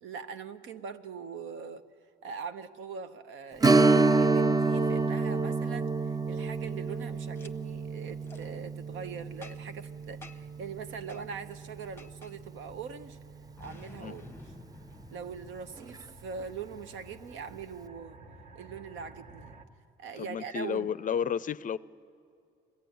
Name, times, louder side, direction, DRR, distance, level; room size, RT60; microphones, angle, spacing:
voice 1, 0.0-1.8 2.2-5.9 6.3-13.2 13.6-14.4 15.1-18.2 18.5-19.5 20.0-20.9, right 6 dB, 85° right, 9 dB, 0.9 m, -42 dB
Strum, 3.6-12.8 13.1-13.2 15.8-15.9 16.4-16.5, right 3 dB, 20° right, 0.4 m, -28 dB
sound 1, 7.2-19.6, right 1 dB, 50° right, 1.3 m, -56 dB
Boom, 7.3-7.5 8.2-8.5 9.4-9.8 10.2-10.6 11.1-11.3 12.0-12.4 13.6-16.3, left 3 dB, 10° left, 0.8 m, -50 dB
voice 2, 20.2-21.8, left 8 dB, 45° left, 17 dB, 0.4 m, -32 dB
21.5 x 14.5 x 9.3 m, 2.4 s
cardioid pair, 90°, 20 cm